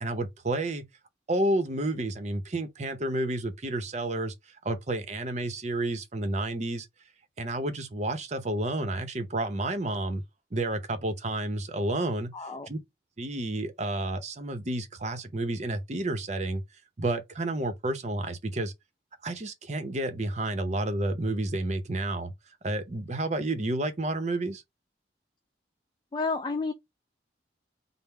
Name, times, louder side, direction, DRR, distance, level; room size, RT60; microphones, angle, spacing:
voice 1, 0.0-0.8 1.3-4.3 4.6-6.9 7.4-10.2 10.5-12.8 13.2-16.6 17.0-18.7 19.2-22.3 22.6-24.6, right 2 dB, 40° right, 0.7 m, -30 dB
voice 2, 12.3-12.7 26.1-26.7, left 3 dB, 25° left, 0.3 m, -30 dB
3.6 x 2.0 x 4.2 m
head